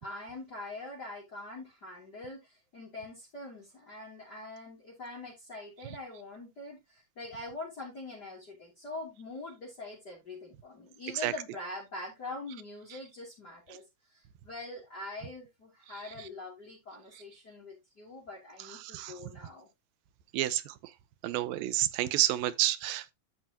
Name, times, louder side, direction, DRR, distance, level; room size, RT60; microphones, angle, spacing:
voice 1, 0.0-13.8 14.1-19.7, left 2 dB, 30° left, 3.2 m, -44 dB
voice 2, 18.7-19.1 20.3-20.8 21.2-23.1, right 14 dB, 90° right, 2.5 m, -29 dB
14.0 x 4.7 x 2.8 m
omnidirectional pair, 4.0 m